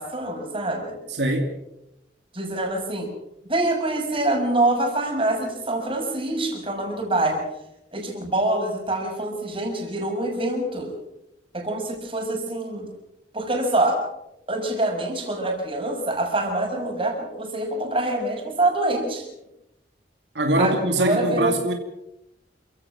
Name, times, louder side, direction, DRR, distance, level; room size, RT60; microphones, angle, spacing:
voice 1, 0.0-1.0 2.3-3.1 3.5-7.4 7.9-10.9 11.5-12.9 13.3-14.0 14.5-19.2 20.6-21.5, right 2 dB, 30° right, 2 dB, 6.0 m, -25 dB
voice 2, 1.1-1.5 20.3-21.7, right 1 dB, 80° right, 4 dB, 2.6 m, -22 dB
28.5 x 16.0 x 6.2 m, 0.86 s
head